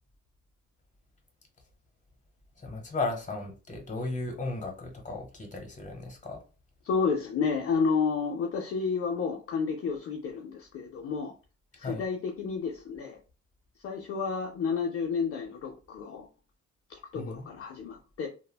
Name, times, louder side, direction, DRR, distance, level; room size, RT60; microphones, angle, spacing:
voice 1, 2.6-6.4 11.8-12.0 17.1-17.5, left 3 dB, 25° left, 3 dB, 1.0 m, -35 dB
voice 2, 6.8-11.3 11.8-13.2 13.8-16.3 16.9-18.3, left 5 dB, 50° left, 2 dB, 0.5 m, -31 dB
3.2 x 2.1 x 2.2 m, 0.34 s
cardioid pair, 90°, 30 cm